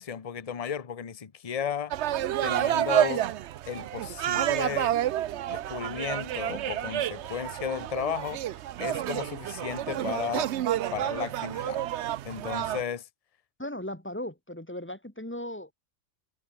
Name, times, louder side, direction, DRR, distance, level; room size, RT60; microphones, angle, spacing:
voice 1, 0.0-1.9 2.4-3.3 3.7-5.0 5.5-8.4 8.8-10.5 10.9-11.8 12.2-13.1, left 7 dB, 35° left, 0.9 m, -34 dB
sound 1, 1.9-12.8, right 12 dB, 70° right, 0.9 m, -29 dB
voice 2, 13.6-15.7, left 1 dB, 10° left, 2.4 m, -37 dB
omnidirectional pair, 1.2 m